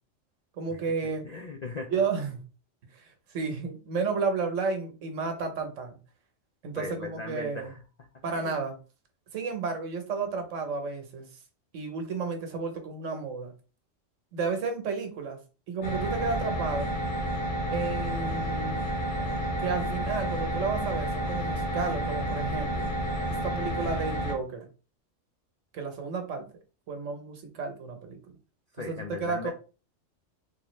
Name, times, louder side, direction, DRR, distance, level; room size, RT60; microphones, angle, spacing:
voice 1, 0.6-1.2 1.9-2.4 2.9-6.0 6.6-7.7 8.2-8.8 9.3-11.3 11.7-13.5 14.3-15.4 15.7-17.0 17.7-18.8 19.6-22.9 23.4-24.7 25.7-26.5 26.9-28.2 28.9-29.5, right 4 dB, 70° right, 6 dB, 1.1 m, -32 dB
voice 2, 1.2-1.9 6.8-7.8 8.2-8.6 28.7-29.5, left 4 dB, 60° left, 3 dB, 0.4 m, -38 dB
sound 1, 15.8-24.3, right 1 dB, 80° left, 1.6 m, -30 dB
3.6 x 2.7 x 3.0 m, 0.34 s
omnidirectional pair, 1.3 m